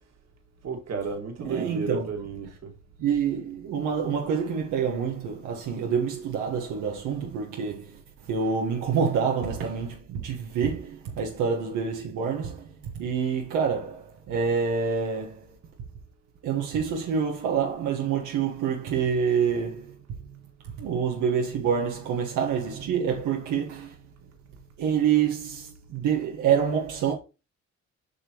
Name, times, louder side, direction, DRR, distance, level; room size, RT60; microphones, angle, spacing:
voice 1, 0.6-2.7, right 4 dB, 60° right, 2.1 m, -32 dB
voice 2, 1.4-2.1 3.0-8.0 8.3-12.7 12.9-15.5 16.4-19.9 20.8-24.0 24.8-27.1, right 7 dB, 90° right, 1.4 m, -27 dB
8.4 x 5.3 x 3.0 m
cardioid pair, 90°, 30 cm